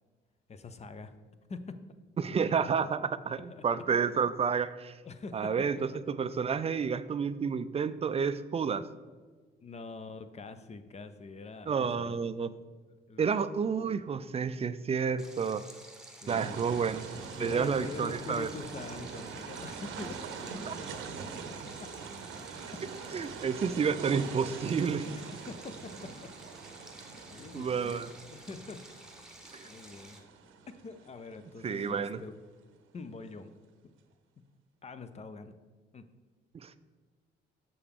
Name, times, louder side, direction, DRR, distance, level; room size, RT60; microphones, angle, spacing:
voice 1, 0.5-1.1 1.5-1.8 3.5-3.6 5.0-5.7 9.6-12.1 13.1-13.2 16.2-16.9 17.4-21.4 21.8-21.9 22.3-22.8 25.1-26.3 26.7-26.9 27.2-28.8 29.2-30.2 30.8-32.3 32.9-33.5 34.8-35.6 35.9-36.1, left 4 dB, 35° left, 10 dB, 0.6 m, -45 dB
voice 2, 2.2-4.9 5.3-8.8 11.7-12.5 13.2-15.6 16.3-17.0 17.4-18.5 20.7-20.8 23.1-25.1 27.5-28.1 29.5-29.7 31.6-32.2 36.6-36.8, right 6 dB, 30° right, 13 dB, 0.4 m, -30 dB
Stream, 15.2-30.2, right 1 dB, 5° right, 1.1 m, -52 dB
sound 1, 16.3-32.2, right 5 dB, 85° right, 0.8 m, -43 dB
6.8 x 6.6 x 3.6 m, 1.4 s
cardioid pair, 90°, 20 cm